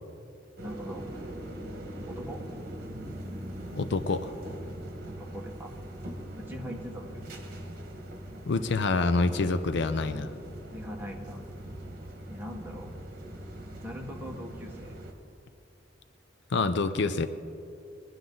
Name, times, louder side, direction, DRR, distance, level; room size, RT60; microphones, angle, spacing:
voice 1, 0.6-1.1 2.1-2.4 5.0-5.7 6.4-7.2 10.7-11.4 12.3-12.9 13.8-14.9, equal, 10° right, 0 dB, 1.5 m, -41 dB
sound 1, 0.6-15.1, right 1 dB, 55° right, 1.6 m, -41 dB
voice 2, 3.7-4.3 8.5-10.3 16.5-17.3, left 3 dB, 65° left, 11 dB, 0.6 m, -27 dB
21.5 x 10.5 x 3.9 m, 2.6 s
head